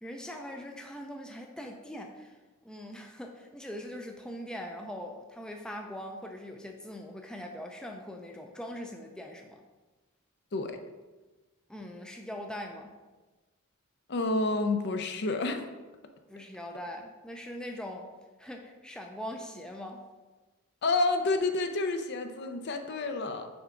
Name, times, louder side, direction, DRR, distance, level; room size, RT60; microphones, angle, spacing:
voice 1, 0.0-2.4 2.6-9.6 11.7-12.9 16.3-18.1 18.4-20.0, equal, 5° left, 2 dB, 0.4 m, -41 dB
voice 2, 14.1-15.7 20.8-23.5, left 3 dB, 50° left, 7 dB, 0.5 m, -29 dB
6.1 x 4.7 x 3.8 m, 1.2 s
head